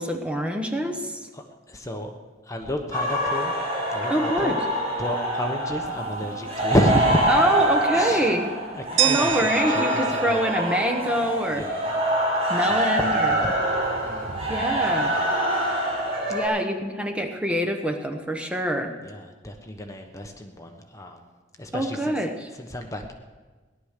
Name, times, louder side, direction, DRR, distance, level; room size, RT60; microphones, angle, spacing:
voice 1, 0.0-1.3 4.1-4.6 7.3-8.6 9.0-11.7 12.5-13.4 14.5-15.2 16.3-18.9 21.7-22.5, equal, 5° right, 4 dB, 1.1 m, -25 dB
voice 2, 1.3-2.1 2.5-3.5 3.9-4.6 5.0-7.3 7.9-8.3 8.9-9.3 9.7-10.3 11.6-11.8 12.7-12.8 13.1-13.5 14.0-14.4 16.3-16.4 19.1-21.2 21.6-22.0 22.6-23.1, equal, 15° left, 4 dB, 1.1 m, -30 dB
sound 1, 2.9-16.5, right 1 dB, 30° right, 6.8 m, -25 dB
sound 2, 9.0-11.9, right 11 dB, 85° right, 0.9 m, -29 dB
18.0 x 11.5 x 6.7 m, 1.3 s
head